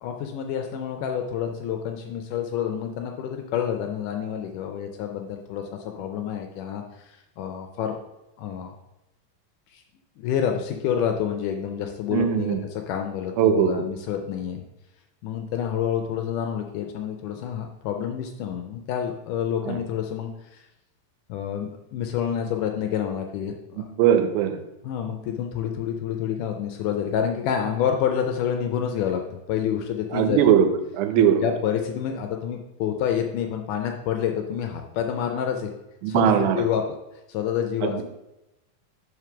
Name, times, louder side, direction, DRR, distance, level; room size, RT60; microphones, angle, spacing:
voice 1, 0.0-8.0 8.4-8.7 9.7-9.8 10.2-14.6 15.2-20.6 21.3-23.9 24.8-30.5 31.2-35.7 36.1-36.8 37.3-38.0, left 8 dB, 80° left, 4 dB, 1.9 m, -28 dB
voice 2, 12.1-12.6 13.4-13.8 19.7-19.8 24.0-24.6 30.1-30.7 31.0-31.4 36.0-36.7 37.8-38.0, right 9 dB, 85° right, 8 dB, 2.5 m, -20 dB
5.0 x 4.7 x 5.9 m, 0.93 s
omnidirectional pair, 4.1 m